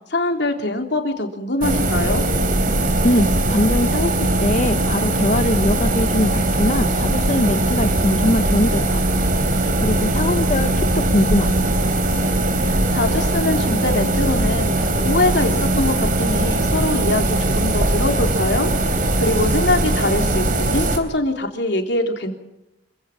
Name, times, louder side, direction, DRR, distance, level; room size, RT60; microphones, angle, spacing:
voice 1, 0.1-2.2 12.6-22.3, left 2 dB, 65° left, 4 dB, 3.6 m, -23 dB
sound 1, 1.6-21.0, right 1 dB, 50° right, 3.6 m, -20 dB
voice 2, 3.0-11.7, left 1 dB, 40° left, 8 dB, 0.9 m, -22 dB
26.5 x 16.5 x 7.4 m, 0.92 s
head